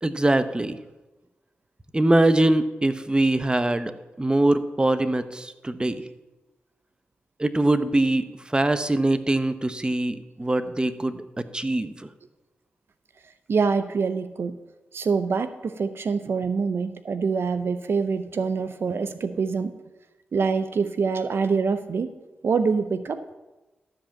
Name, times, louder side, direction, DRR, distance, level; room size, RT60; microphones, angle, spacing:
voice 1, 0.0-0.8 1.9-6.1 7.4-12.1, right 1 dB, 20° right, 11 dB, 0.8 m, -23 dB
voice 2, 13.5-14.6 14.9-19.8 20.3-22.1 22.4-23.3, right 5 dB, 65° right, 11 dB, 0.6 m, -25 dB
13.0 x 5.1 x 7.2 m, 1.1 s
cardioid pair, 45°, 4 cm